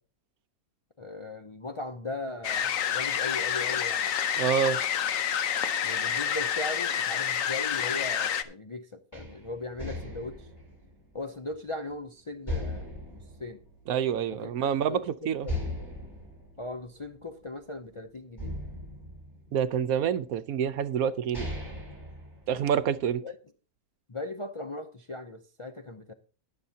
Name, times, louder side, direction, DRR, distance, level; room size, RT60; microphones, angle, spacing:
voice 1, 1.0-4.1 5.8-10.5 11.1-13.6 14.3-14.5 14.9-15.0 15.4-15.6 16.6-18.6 23.2-23.3 24.1-26.1, left 2 dB, 45° left, 0.4 m, -38 dB
sound 1, 2.4-8.4, left 8 dB, 65° left, 1.1 m, -28 dB
voice 2, 4.4-4.8 13.9-15.5 19.5-21.5 22.5-23.2, right 8 dB, 75° right, 1.1 m, -27 dB
sound 2, 9.1-11.9 12.5-14.4 14.7-14.8 15.4-17.8 18.4-20.0 20.7-20.8 21.1-23.0, left 1 dB, 15° left, 5.9 m, -38 dB
21.0 x 7.2 x 2.8 m
omnidirectional pair, 1.5 m